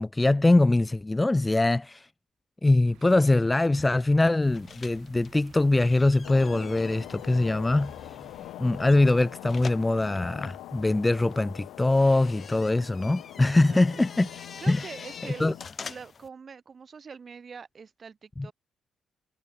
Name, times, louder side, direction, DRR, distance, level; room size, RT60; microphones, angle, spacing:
voice 1, 0.0-2.1 2.6-7.9 8.6-14.3 14.7-14.9 15.4-15.5 18.4-18.5, left 2 dB, 15° left, 0.3 m, -23 dB
sound 1, 2.8-8.9, right 14 dB, 90° right, 4.0 m, -56 dB
sound 2, 4.4-16.3, left 5 dB, 40° left, 1.9 m, -46 dB
sound 3, 6.2-15.7, left 15 dB, 90° left, 2.7 m, -43 dB
voice 2, 14.6-15.5 15.8-18.5, right 5 dB, 40° right, 2.1 m, -44 dB
cardioid pair, 90°, 0 cm